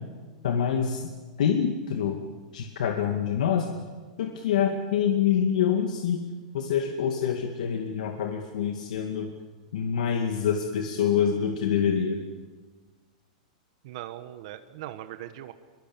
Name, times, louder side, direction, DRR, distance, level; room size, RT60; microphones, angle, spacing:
voice 1, 0.4-1.1 1.4-2.2 2.5-3.7 4.2-6.2 6.5-9.3 9.7-12.2, left 8 dB, 75° left, 3 dB, 2.3 m, -26 dB
voice 2, 13.8-15.5, right 13 dB, 50° right, 10 dB, 1.2 m, -40 dB
25.5 x 23.5 x 7.4 m, 1.4 s
supercardioid pair, 165°, 4 cm